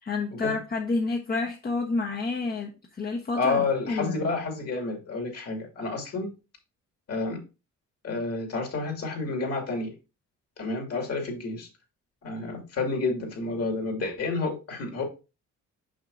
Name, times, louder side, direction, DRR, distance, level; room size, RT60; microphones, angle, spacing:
voice 1, 0.0-4.3, left 3 dB, 30° left, 0 dB, 1.0 m, -29 dB
voice 2, 3.3-6.3 7.1-7.4 8.0-9.9 10.6-11.7 12.2-15.0, left 3 dB, 50° left, 2 dB, 2.6 m, -29 dB
6.2 x 5.9 x 2.6 m, 0.29 s
cardioid pair, 90°, 30 cm